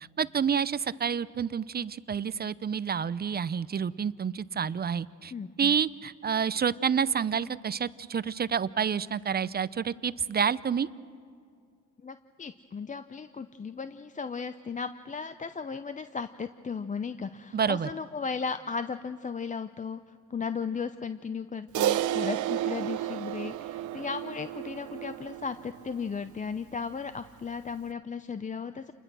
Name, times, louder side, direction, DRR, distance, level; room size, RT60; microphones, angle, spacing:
voice 1, 0.2-5.3 5.6-10.9 17.5-17.9, right 7 dB, 30° right, 17 dB, 0.6 m, -29 dB
voice 2, 5.3-5.7 12.0-20.0 20.3-28.9, left 5 dB, 25° left, 11 dB, 0.7 m, -36 dB
Crash cymbal, 21.7-26.3, right 13 dB, 80° right, 0.8 m, -32 dB
28.5 x 21.0 x 6.2 m, 2.3 s
cardioid pair, 90°, 30 cm